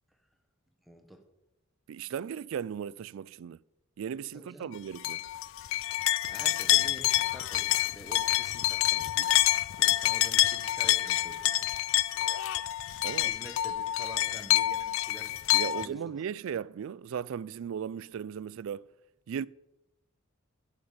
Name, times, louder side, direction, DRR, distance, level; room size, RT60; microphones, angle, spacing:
voice 1, 0.9-1.2 4.3-4.7 6.3-11.7 13.2-15.3 15.7-16.0, right 1 dB, ahead, 1.1 m, -48 dB
voice 2, 1.9-3.6 4.0-5.2 13.0-13.3 15.5-18.9 19.3-19.5, right 8 dB, 65° right, 0.3 m, -36 dB
sound 1, 5.0-15.9, left 14 dB, 60° left, 0.3 m, -27 dB
11.5 x 8.9 x 5.1 m
head